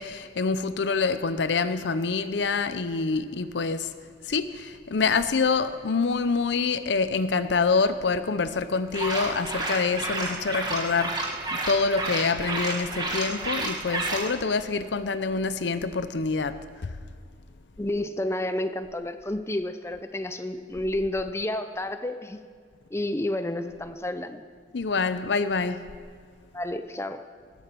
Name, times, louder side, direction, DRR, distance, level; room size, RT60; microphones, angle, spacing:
voice 1, 0.0-3.9 4.2-17.0 24.7-25.9, left 4 dB, 80° left, 12 dB, 0.6 m, -26 dB
sound 1, 8.9-14.3, right 2 dB, 25° right, 1.6 m, -31 dB
voice 2, 17.8-22.4 22.9-24.4 26.5-27.3, left 1 dB, 15° left, 9 dB, 0.6 m, -30 dB
19.5 x 8.2 x 6.2 m, 2.1 s
head